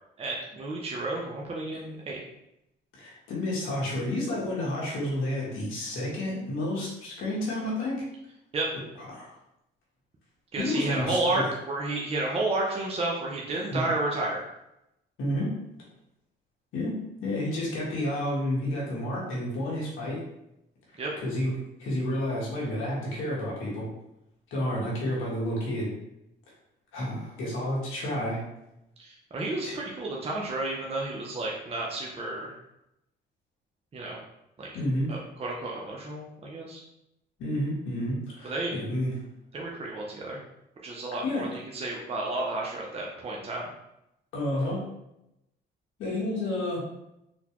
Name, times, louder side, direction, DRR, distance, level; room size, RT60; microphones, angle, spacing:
voice 1, 0.2-2.2 8.5-8.7 10.5-14.5 21.0-21.1 29.0-32.5 33.9-34.2 34.6-34.7 35.1-36.8 38.4-38.7 39.5-40.4 40.8-43.6, right 2 dB, 30° right, -3 dB, 0.6 m, -31 dB
voice 2, 2.9-8.1 9.1-9.4 10.6-11.5 13.7-13.8 15.2-15.5 16.7-20.2 21.2-21.5 21.8-23.9 24.5-25.9 26.9-28.4 29.6-29.7 34.7-35.1 37.4-39.2 41.2-41.4 44.3-44.8 46.0-46.8, left 1 dB, 85° left, -5 dB, 1.3 m, -30 dB
3.9 x 2.3 x 2.9 m, 0.85 s
cardioid pair, 90°, 20 cm